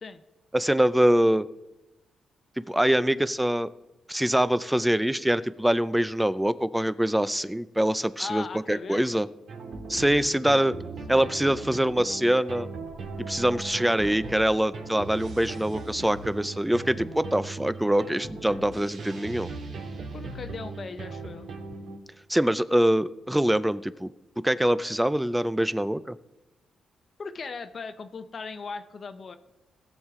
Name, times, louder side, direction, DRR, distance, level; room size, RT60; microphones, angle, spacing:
voice 1, 0.5-1.5 2.6-3.7 4.1-9.3 9.9-10.8 11.1-12.7 13.2-19.5 22.3-26.2, right 1 dB, 5° right, 16 dB, 0.3 m, -24 dB
voice 2, 8.2-9.2 11.1-11.3 20.1-21.5 27.2-29.4, left 4 dB, 40° left, 10 dB, 0.7 m, -38 dB
sound 1, 9.5-22.0, right 3 dB, 70° right, 2.0 m, -39 dB
18.0 x 7.3 x 3.6 m, 0.97 s
cardioid pair, 130°, 0 cm